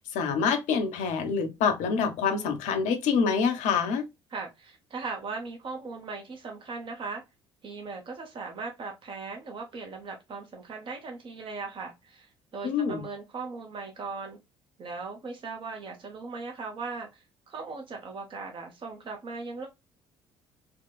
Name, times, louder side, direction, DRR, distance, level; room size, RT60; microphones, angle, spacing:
voice 1, 0.1-4.0 12.6-13.0, left 6 dB, 60° left, 0.8 m, -26 dB
voice 2, 4.3-7.2 7.6-14.4 14.8-19.7, right 4 dB, 40° right, 0.9 m, -38 dB
4.5 x 2.2 x 2.2 m
figure-of-eight pair, 55°, 14 cm